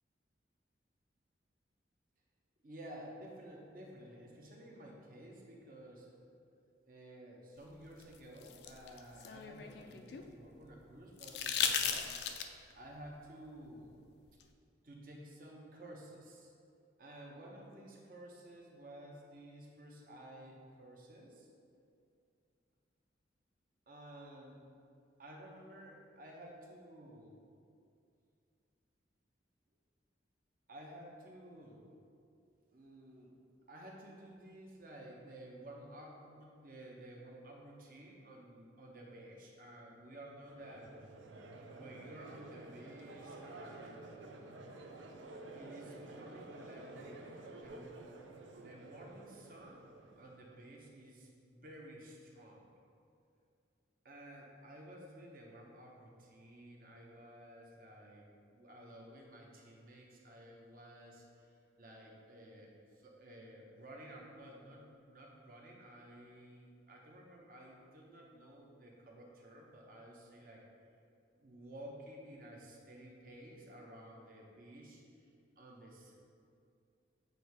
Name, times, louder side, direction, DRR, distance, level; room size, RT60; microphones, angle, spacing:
voice 1, 2.6-6.3 6.8-12.1 12.7-13.9 14.8-16.5 17.0-21.5 23.9-24.6 25.2-27.4 30.7-31.8 32.7-33.4 33.7-40.9 41.7-44.0 45.5-48.2 48.6-49.8 50.2-52.7 54.0-70.6 71.3-75.2 75.6-76.1, right 1 dB, 50° right, -1 dB, 0.9 m, -53 dB
sound 1, 8.0-10.3 11.2-12.7 14.4-14.5, left 7 dB, 65° left, 0.4 m, -36 dB
Crowd, 40.4-50.6, right 2 dB, 90° right, 0.5 m, -51 dB
7.8 x 2.8 x 4.6 m, 2.5 s
head